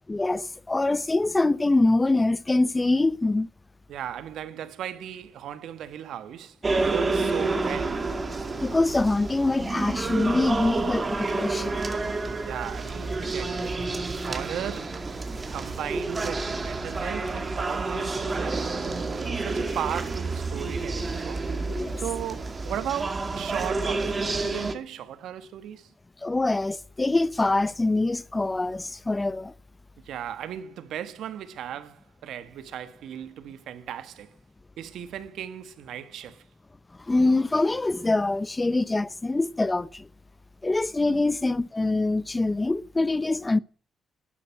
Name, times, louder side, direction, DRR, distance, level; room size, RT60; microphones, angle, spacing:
voice 1, 0.1-3.5 8.6-11.9 21.7-22.0 26.2-29.5 37.1-40.1 40.6-43.6, left 2 dB, 20° left, 0.7 m, -24 dB
voice 2, 3.9-8.1 12.5-13.9 14.1-15.0 15.5-21.5 22.0-25.9 30.0-34.4 34.8-36.4 41.0-41.2, right 10 dB, 75° right, 1.5 m, -36 dB
sound 1, 6.6-24.7, right 3 dB, 30° right, 2.3 m, -29 dB
13.0 x 8.9 x 8.7 m
cardioid pair, 90°, 0 cm